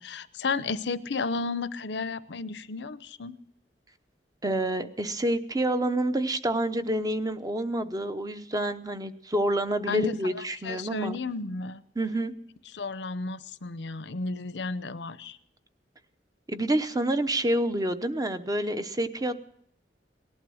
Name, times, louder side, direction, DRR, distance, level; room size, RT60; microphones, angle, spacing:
voice 1, 0.0-3.3 9.9-11.8 12.7-15.4, left 3 dB, 75° left, 15 dB, 0.7 m, -33 dB
voice 2, 4.4-11.2 12.0-12.3 16.5-19.3, right 1 dB, 20° right, 9 dB, 0.8 m, -28 dB
18.5 x 11.5 x 6.3 m, 0.67 s
head